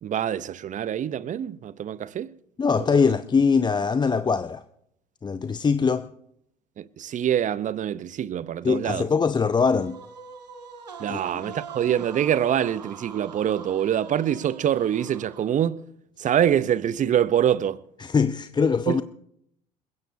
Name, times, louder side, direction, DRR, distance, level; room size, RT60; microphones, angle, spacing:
voice 1, 0.0-2.3 2.8-3.0 6.8-9.1 11.0-15.8 16.2-17.8 18.9-19.0, right 10 dB, 40° right, 0.8 m, -25 dB
voice 2, 2.6-4.6 5.2-6.1 8.6-10.0 11.1-11.2 11.5-11.6 18.0-19.0, left 5 dB, 20° left, 0.7 m, -22 dB
sound 1, 9.4-15.7, right 6 dB, 85° right, 1.9 m, -43 dB
28.0 x 16.0 x 2.8 m
hypercardioid pair, 65°, 20 cm